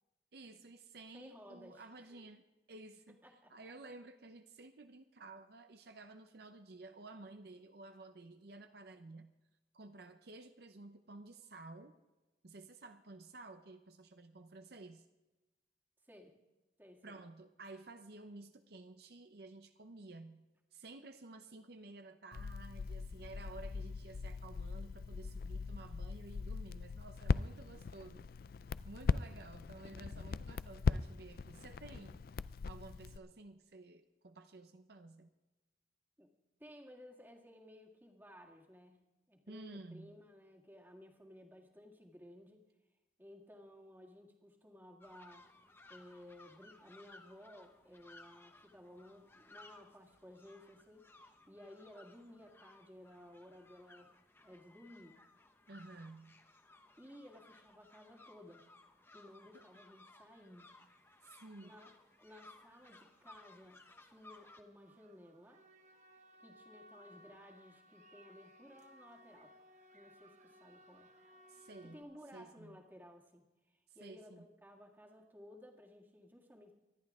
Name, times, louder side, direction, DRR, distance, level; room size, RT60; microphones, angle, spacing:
voice 1, 0.3-3.2 3.5-9.3 9.7-11.9 12.4-15.1 17.0-20.5 20.7-28.3 28.8-32.2 32.7-35.3 39.5-40.2 55.7-56.4 59.5-59.6 61.2-61.7 71.5-72.0 72.3-72.8 73.9-74.4, right 2 dB, 60° right, 8 dB, 0.7 m, -53 dB
voice 2, 1.1-2.3 3.1-3.7 16.0-16.4 16.8-17.2 36.2-36.3 36.6-39.0 39.3-42.7 43.2-45.4 45.9-54.1 54.4-55.2 57.0-58.6 59.1-60.6 61.6-65.6 66.4-69.6 69.9-71.1 71.8-76.7, left 1 dB, 10° right, 1 dB, 1.8 m, -57 dB
Crackle, 22.3-33.2, left 4 dB, 55° left, 0.4 m, -39 dB
sound 1, 45.0-64.6, left 2 dB, 15° left, 0.9 m, -61 dB
sound 2, 60.6-60.8 61.1-72.0, equal, 40° right, 1.0 m, -63 dB
24.5 x 11.0 x 3.6 m, 1.1 s
head